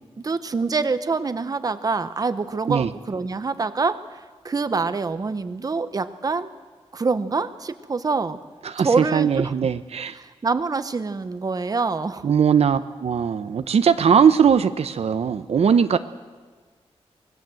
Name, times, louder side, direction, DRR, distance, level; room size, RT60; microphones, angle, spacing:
voice 1, 0.2-6.5 6.9-8.4 8.8-9.5 10.2-12.3, right 4 dB, 35° right, 11 dB, 1.0 m, -25 dB
voice 2, 8.6-10.2 12.2-16.0, right 7 dB, 70° right, 10 dB, 0.8 m, -20 dB
25.0 x 20.5 x 7.7 m, 1.4 s
wide cardioid pair, 150°, 11 cm